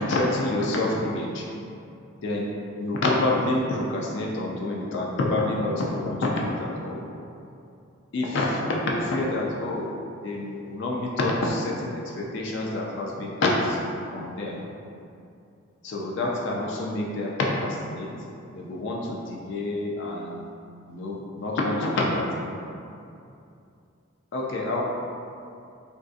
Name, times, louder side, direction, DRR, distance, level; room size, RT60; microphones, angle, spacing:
voice 1, 0.0-1.4 2.2-2.5 2.8-7.0 8.1-9.9 10.2-13.8 14.1-14.6 15.8-18.1 18.5-20.5 20.9-22.5 24.3-24.8, left 2 dB, 60° left, -2 dB, 0.3 m, -27 dB
3.5 x 2.6 x 2.4 m, 2.5 s
head